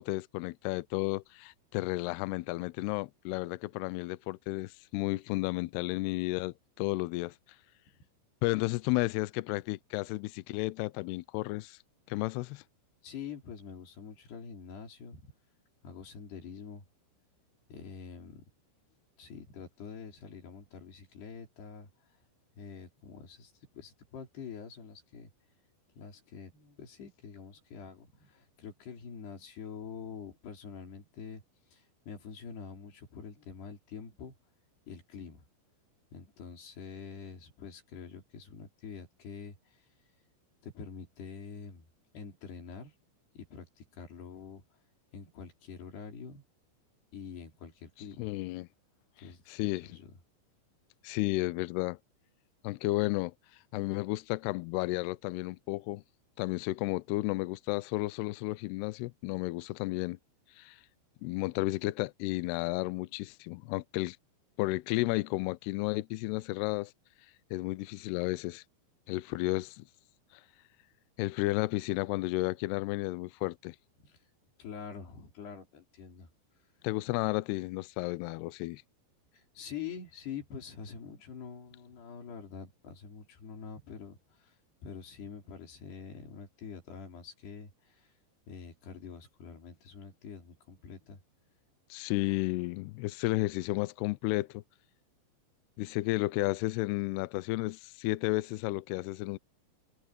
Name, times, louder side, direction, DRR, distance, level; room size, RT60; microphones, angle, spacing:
voice 1, 0.0-7.3 8.4-11.8 12.1-12.6 48.2-48.7 49.5-49.9 51.0-52.0 52.6-53.3 53.7-56.0 56.4-60.2 60.6-60.8 61.2-64.2 64.6-66.9 67.5-68.6 69.1-69.8 71.2-73.8 76.8-78.8 91.9-94.6 95.8-99.4, left 20 dB, 85° left, 2.3 m, -32 dB
voice 2, 13.0-15.2 15.8-16.9 17.7-18.4 19.2-21.9 22.6-25.3 26.0-31.4 31.7-34.3 34.9-35.5 36.1-39.8 40.6-41.8 42.1-42.9 43.4-44.6 45.1-46.4 47.1-48.3 49.2-50.1 74.0-74.2 74.6-76.3 79.3-84.6 84.8-88.1 88.5-91.2, left 6 dB, 60° left, 6.1 m, -46 dB
omnidirectional pair, 5.5 m